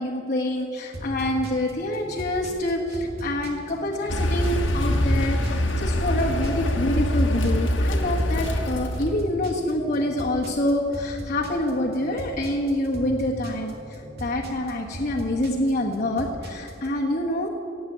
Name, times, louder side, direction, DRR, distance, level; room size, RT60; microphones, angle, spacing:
voice 1, 0.0-17.5, left 1 dB, 40° left, -5 dB, 1.5 m, -26 dB
sound 1, 0.9-16.9, equal, 55° right, 2.2 m, -38 dB
Car, 4.1-9.2, left 1 dB, 80° left, 1.5 m, -24 dB
17.5 x 7.8 x 8.7 m, 2.5 s
head